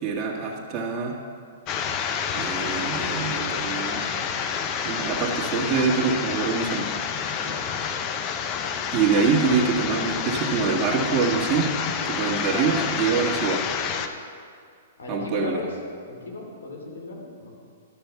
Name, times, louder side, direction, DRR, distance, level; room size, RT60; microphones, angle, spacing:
voice 1, 0.0-1.2 2.3-4.1 4.8-6.9 8.9-11.7 12.0-13.6 15.1-15.6, right 5 dB, 25° right, -2 dB, 1.8 m, -25 dB
sound 1, 1.7-14.1, left 7 dB, 35° left, 0.6 m, -28 dB
voice 2, 12.4-12.9 15.0-15.7 16.1-17.6, left 2 dB, 90° left, 0 dB, 2.8 m, -36 dB
12.5 x 6.8 x 5.9 m, 2.3 s
hypercardioid pair, 145°, 0 cm